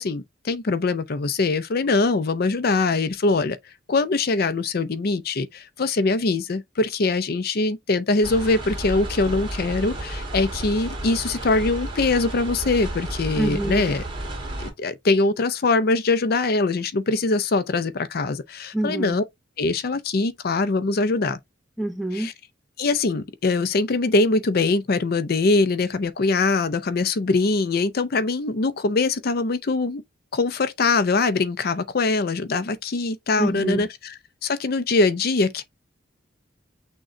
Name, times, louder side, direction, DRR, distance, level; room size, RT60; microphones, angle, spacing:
voice 1, 0.0-3.6 3.9-14.1 14.6-19.2 19.6-21.4 22.1-22.3 22.8-30.0 30.3-34.1 34.4-35.6, left 3 dB, 50° left, 0.5 m, -22 dB
sound 1, 8.2-14.7, right 1 dB, 25° right, 1.7 m, -32 dB
voice 2, 13.4-13.9 18.7-19.2 21.8-22.3 33.4-33.8, right 1 dB, ahead, 0.6 m, -26 dB
6.3 x 2.3 x 3.7 m
head